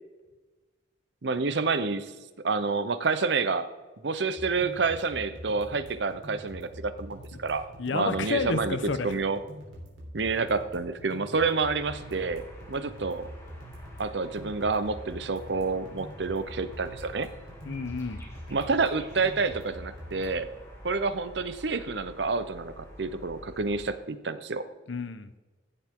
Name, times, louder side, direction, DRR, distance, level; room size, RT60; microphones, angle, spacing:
voice 1, 1.2-2.1 2.4-3.7 4.0-7.6 7.9-9.4 10.1-13.3 14.0-17.3 18.5-20.5 20.8-24.6, right 4 dB, 65° right, 12 dB, 0.7 m, -28 dB
sound 1, 4.4-20.4, equal, 85° right, 3.6 m, -45 dB
voice 2, 7.8-9.2 17.6-18.2 24.9-25.3, left 4 dB, 85° left, 12 dB, 0.8 m, -30 dB
sound 2, 11.7-23.9, equal, 15° left, 2.5 m, -48 dB
15.0 x 7.7 x 3.7 m, 1.2 s
head